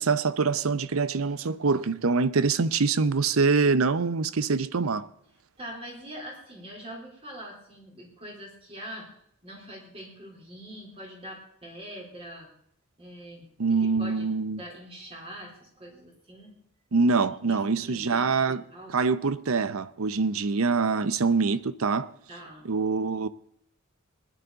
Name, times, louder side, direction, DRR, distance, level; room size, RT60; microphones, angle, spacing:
voice 1, 0.0-5.1 13.6-14.6 16.9-18.6 18.9-22.1 22.6-23.3, right 4 dB, 75° right, 0.7 m, -25 dB
voice 2, 5.6-9.1 9.4-12.5 13.0-14.3 14.6-16.6 17.5-19.0 22.3-22.7, equal, 25° right, 3.7 m, -43 dB
20.0 x 10.5 x 4.0 m
head